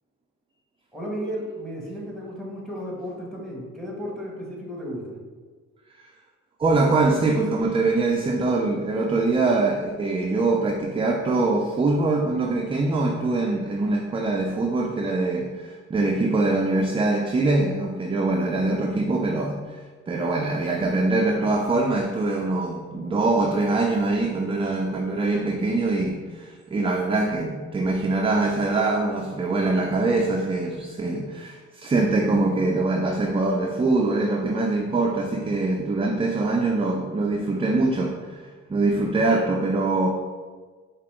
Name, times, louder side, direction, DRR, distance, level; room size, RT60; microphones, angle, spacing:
voice 1, 0.9-5.2, equal, ahead, -3 dB, 1.3 m, -34 dB
voice 2, 6.6-40.1, right 2 dB, 20° right, 1 dB, 0.4 m, -23 dB
4.8 x 2.8 x 3.5 m, 1.4 s
cardioid pair, 90°, 30 cm